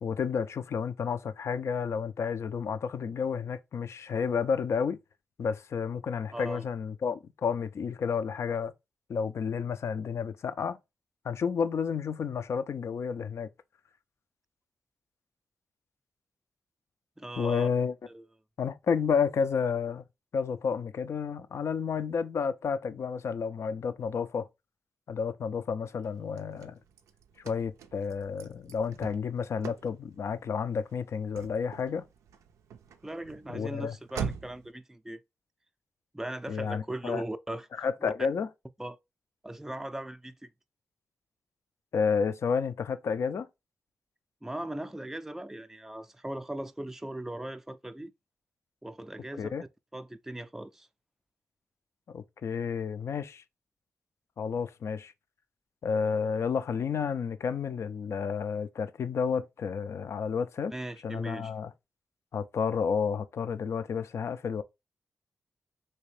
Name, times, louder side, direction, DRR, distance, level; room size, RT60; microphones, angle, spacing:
voice 1, 0.0-5.0 5.4-8.7 9.1-10.8 11.2-13.5 17.4-17.9 18.6-20.0 20.3-24.5 25.1-26.8 27.4-32.1 33.5-33.9 36.5-37.2 37.8-38.5 41.9-43.5 49.4-49.6 52.1-53.4 54.4-55.1 55.8-60.7 61.0-61.7 62.3-64.6, left 6 dB, 65° left, 0.3 m, -31 dB
voice 2, 6.3-6.7 17.2-17.7 18.1-18.3 33.0-35.2 36.1-37.7 38.0-38.1 38.8-39.0 39.4-40.5 44.4-48.1 48.8-49.5 49.9-50.9 60.7-61.5, right 1 dB, 10° right, 0.3 m, -39 dB
Car / Slam, 26.0-34.7, right 7 dB, 90° right, 0.3 m, -44 dB
3.2 x 2.7 x 3.1 m
supercardioid pair, 40°, 5 cm